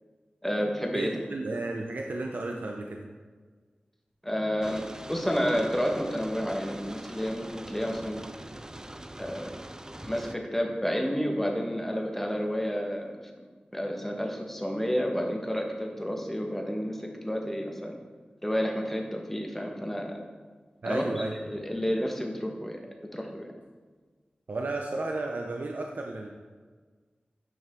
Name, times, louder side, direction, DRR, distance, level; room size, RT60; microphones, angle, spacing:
voice 1, 0.4-1.1 4.2-8.2 9.2-9.5 10.0-13.1 13.7-17.9 18.4-20.2 20.8-22.8 23.1-23.5, equal, 5° left, 1 dB, 1.4 m, -30 dB
voice 2, 0.9-3.1 20.8-21.3 24.5-26.3, right 2 dB, 70° right, 1 dB, 0.7 m, -33 dB
sound 1, 4.6-10.3, right 1 dB, 20° right, 0.5 m, -43 dB
9.4 x 5.4 x 3.7 m, 1.5 s
cardioid pair, 40°, 3 cm